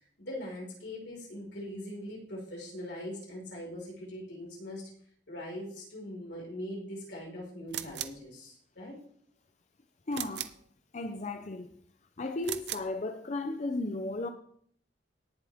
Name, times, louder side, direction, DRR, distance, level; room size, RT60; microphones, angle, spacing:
voice 1, 0.2-4.8 5.3-9.0, left 1 dB, 75° left, -3 dB, 5.2 m, -41 dB
sound 1, 7.7-8.2 10.1-10.6 12.4-12.9, right 11 dB, 65° right, 0.7 m, -38 dB
voice 2, 10.1-10.5 10.9-11.7 12.2-14.3, left 2 dB, 40° left, 8 dB, 0.6 m, -34 dB
18.5 x 7.3 x 3.6 m, 0.62 s
head